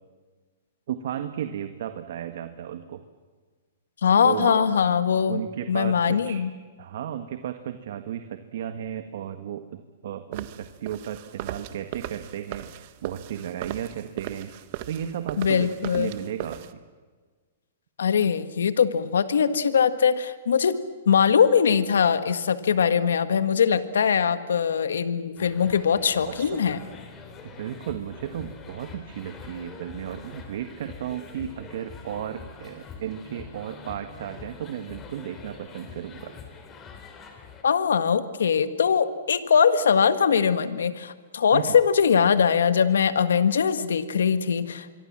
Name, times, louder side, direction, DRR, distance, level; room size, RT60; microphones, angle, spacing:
voice 1, 0.9-3.0 4.2-4.7 5.3-6.4 6.8-14.5 14.9-15.7 16.0-16.6 26.2-26.6 27.4-36.3 41.5-41.8, right 10 dB, 65° right, 8 dB, 1.6 m, -34 dB
voice 2, 4.0-5.4 5.7-6.5 15.4-16.1 18.0-20.7 21.1-26.8 37.6-44.9, left 7 dB, 90° left, 12 dB, 1.6 m, -21 dB
sound 1, 10.3-16.7, right 13 dB, 45° right, 1.5 m, -38 dB
sound 2, 25.3-37.6, left 5 dB, 20° left, 3.9 m, -44 dB
26.0 x 24.0 x 7.5 m, 1.4 s
hypercardioid pair, 145°, 0 cm